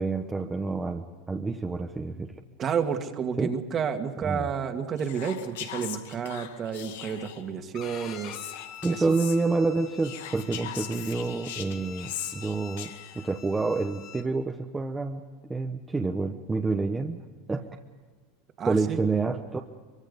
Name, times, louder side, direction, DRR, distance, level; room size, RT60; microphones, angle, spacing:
voice 1, 0.0-2.4 3.4-3.5 4.2-4.5 8.8-12.9 13.1-15.2 15.5-17.2 17.5-17.7 18.6-19.6, right 3 dB, 10° right, 2 dB, 1.1 m, -28 dB
voice 2, 2.6-8.3 8.9-9.0 18.6-19.0, right 7 dB, 30° right, 6 dB, 2.0 m, -30 dB
Whispering, 5.0-7.5 8.2-9.4 10.0-13.3, left 10 dB, 85° left, 2.1 m, -40 dB
Bowed string instrument, 7.7-14.3, left 10 dB, 45° left, 1.9 m, -46 dB
24.0 x 23.5 x 5.4 m, 1.4 s
supercardioid pair, 140°, 0 cm